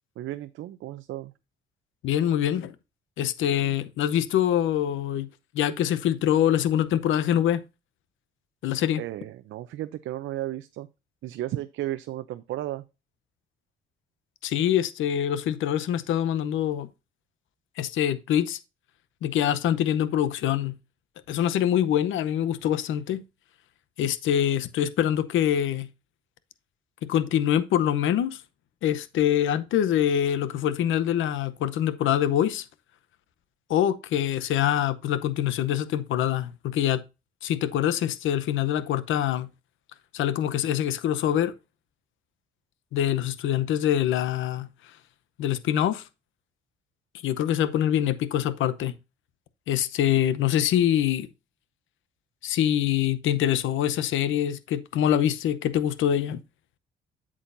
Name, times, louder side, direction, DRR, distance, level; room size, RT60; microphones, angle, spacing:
voice 1, 0.2-1.3 9.0-10.9 11.2-12.8, right 14 dB, 80° right, 0.6 m, -34 dB
voice 2, 2.0-2.7 3.2-5.3 5.5-7.6 8.6-9.0 14.4-16.9 17.8-18.6 19.2-20.7 21.3-23.2 24.0-25.9 27.0-28.4 28.8-32.6 33.7-37.0 37.4-39.5 40.1-41.5 42.9-44.7 45.4-46.0 47.2-48.9 49.7-51.3 52.4-56.4, left 10 dB, 80° left, 0.8 m, -24 dB
8.3 x 7.5 x 2.6 m
cardioid pair, 90°, 20 cm